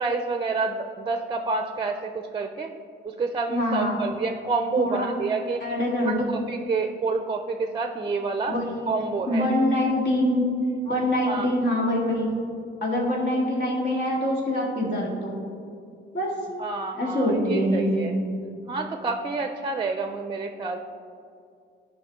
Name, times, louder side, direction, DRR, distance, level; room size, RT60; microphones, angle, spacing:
voice 1, 0.0-2.7 3.0-5.6 6.0-6.2 6.5-8.6 8.9-9.5 11.3-11.7 16.6-18.1 18.7-20.8, right 4 dB, 25° right, 6 dB, 0.5 m, -28 dB
voice 2, 3.5-4.0 4.8-5.1 5.6-6.3 8.5-8.6 9.3-10.5 10.8-12.3 12.8-15.4 16.1-16.3 16.9-18.1, left 1 dB, 65° left, -3 dB, 2.0 m, -24 dB
11.0 x 4.8 x 3.6 m, 2.4 s
cardioid pair, 90°, 20 cm